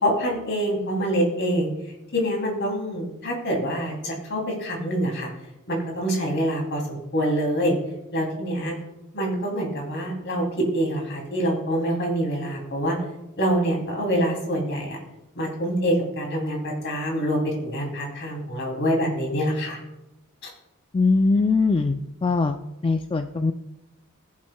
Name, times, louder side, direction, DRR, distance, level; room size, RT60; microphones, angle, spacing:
voice 1, 0.0-1.7 2.1-5.3 5.7-7.7 8.1-8.7 9.1-13.0 13.4-15.0 15.4-19.8, equal, 55° left, 0 dB, 3.0 m, -25 dB
voice 2, 20.9-22.6 22.8-23.5, left 3 dB, 25° left, 6 dB, 0.3 m, -21 dB
20.5 x 7.2 x 2.3 m, 0.95 s
head